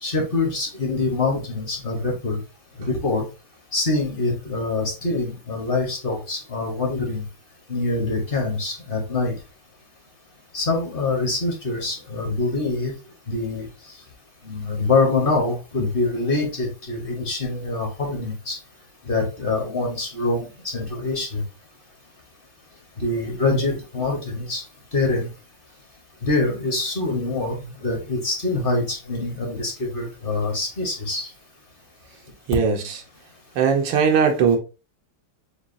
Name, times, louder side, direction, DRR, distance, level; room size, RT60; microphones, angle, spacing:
voice 1, 0.0-2.4 2.8-3.2 3.7-7.2 7.7-9.3 10.5-12.9 13.3-13.7 14.5-18.6 19.1-21.4 23.0-24.6 24.9-25.3 26.2-31.3, left 3 dB, 40° left, 0.8 m, -24 dB
voice 2, 32.5-33.0 33.6-34.6, right 6 dB, 90° right, 1.5 m, -19 dB
7.0 x 2.3 x 2.5 m
omnidirectional pair, 1.9 m